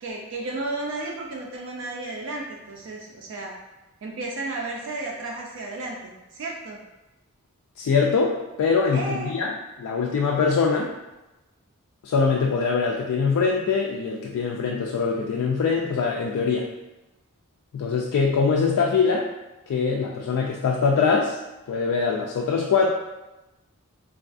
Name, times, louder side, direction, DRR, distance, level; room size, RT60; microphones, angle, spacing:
voice 1, 0.0-3.5 4.0-6.8 8.9-9.4, right 2 dB, 60° right, -1 dB, 0.4 m, -33 dB
voice 2, 7.8-9.5 9.8-10.9 12.0-16.7 17.7-19.3 19.7-21.4 21.7-22.9, left 5 dB, 75° left, -1 dB, 0.3 m, -23 dB
3.3 x 2.3 x 2.4 m, 1.0 s
head